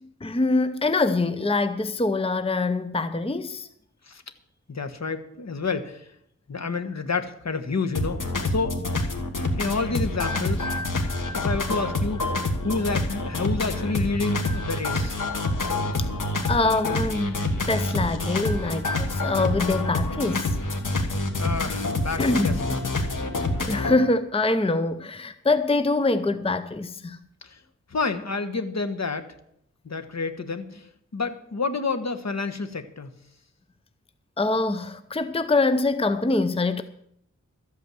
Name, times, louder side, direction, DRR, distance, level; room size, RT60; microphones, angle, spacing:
voice 1, 0.0-3.7 16.0-16.1 16.5-20.6 22.2-22.6 23.6-27.2 34.4-36.8, left 2 dB, 20° left, 0.7 m, -24 dB
voice 2, 4.7-6.1 6.5-8.2 8.5-8.8 9.6-10.7 11.3-12.3 12.6-15.2 21.4-22.8 27.4-27.6 27.9-29.3 29.8-33.1, left 4 dB, 60° left, 1.3 m, -29 dB
sound 1, 7.9-24.0, left 2 dB, 85° left, 1.6 m, -27 dB
13.0 x 8.4 x 7.7 m
wide cardioid pair, 65°, 31 cm